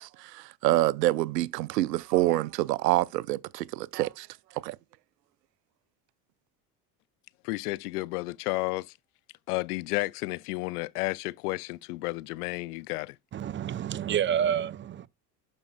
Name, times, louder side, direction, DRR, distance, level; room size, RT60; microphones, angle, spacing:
voice 1, 0.0-4.3 4.6-4.8, right 16 dB, 80° right, 0.6 m, -27 dB
voice 2, 7.4-8.9 9.5-13.2, left 22 dB, 70° left, 0.5 m, -32 dB
voice 3, 13.3-15.1, right 9 dB, 25° right, 0.5 m, -28 dB
11.5 x 5.2 x 2.2 m
hypercardioid pair, 65°, 48 cm